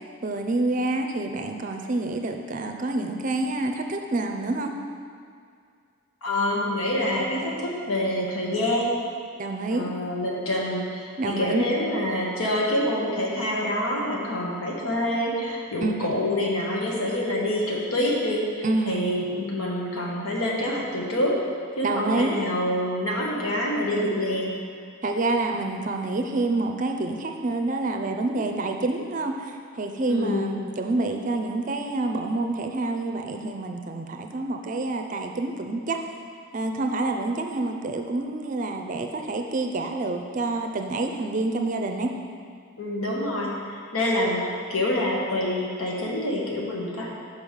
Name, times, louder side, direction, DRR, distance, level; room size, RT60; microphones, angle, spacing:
voice 1, 0.2-4.7 9.3-9.9 11.2-11.6 15.8-16.2 18.6-19.0 21.8-22.4 25.0-36.0 36.5-42.1, right 2 dB, 40° right, 4 dB, 0.5 m, -27 dB
voice 2, 6.2-9.0 9.7-21.4 21.8-24.5 30.0-30.5 42.8-47.1, left 1 dB, 85° left, -2 dB, 1.3 m, -26 dB
5.4 x 5.2 x 6.4 m, 2.2 s
head